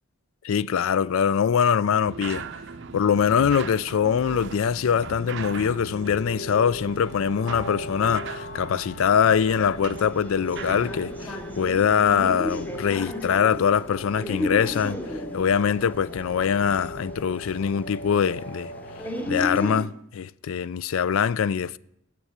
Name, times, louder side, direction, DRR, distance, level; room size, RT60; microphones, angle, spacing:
voice 1, 0.4-2.4 2.9-15.0 15.3-18.7 19.3-21.8, left 7 dB, 70° left, 0.4 m, -23 dB
sound 1, 2.1-11.7, right 5 dB, 55° right, 0.5 m, -39 dB
sound 2, 5.1-19.5, left 1 dB, 45° left, 1.0 m, -39 dB
sound 3, 9.8-19.9, left 1 dB, 10° left, 0.9 m, -35 dB
10.0 x 7.7 x 8.0 m
head